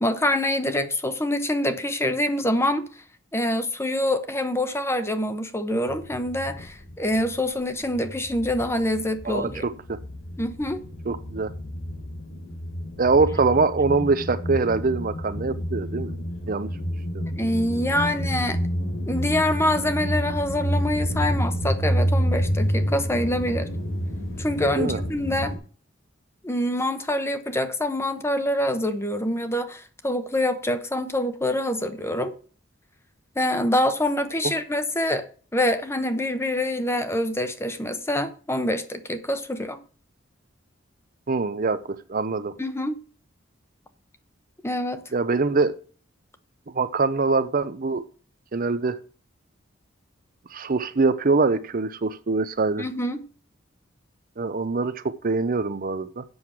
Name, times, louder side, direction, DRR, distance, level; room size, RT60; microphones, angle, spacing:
voice 1, 0.0-2.9 3.3-9.6 10.4-10.8 17.4-18.6 19.1-23.7 24.4-25.6 26.4-32.3 33.4-35.3 35.5-39.8 42.6-43.0 44.6-45.0 52.8-53.3, left 1 dB, 15° left, 0.9 m, -25 dB
sound 1, 5.9-7.5 7.8-25.6, equal, 90° left, 3.9 m, -29 dB
voice 2, 9.2-10.0 11.1-11.5 13.0-16.1 16.5-16.7 17.1-17.3 24.7-25.0 34.4-34.5 41.3-41.8 42.1-42.5 45.1-45.7 46.7-48.0 48.5-49.0 50.5-52.8 54.4-56.2, right 3 dB, 45° right, 0.7 m, -23 dB
7.9 x 6.4 x 7.3 m
head